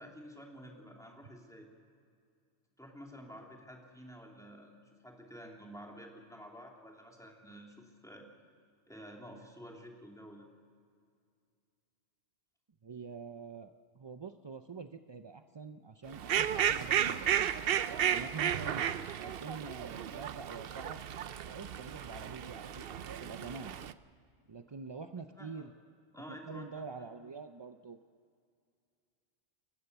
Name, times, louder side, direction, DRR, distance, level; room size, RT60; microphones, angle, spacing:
voice 1, 0.0-1.7 2.8-8.3 8.9-10.5 19.1-19.3 25.4-25.7 26.1-26.8, equal, 5° left, 0 dB, 3.0 m, -50 dB
voice 2, 12.8-17.5 18.0-18.9 19.2-21.0 21.5-23.7 24.5-25.7 26.2-28.0, right 4 dB, 40° right, 8 dB, 0.4 m, -46 dB
Fowl, 16.1-23.9, right 9 dB, 55° right, 0.8 m, -33 dB
29.0 x 15.0 x 6.9 m, 2.3 s
omnidirectional pair, 1.3 m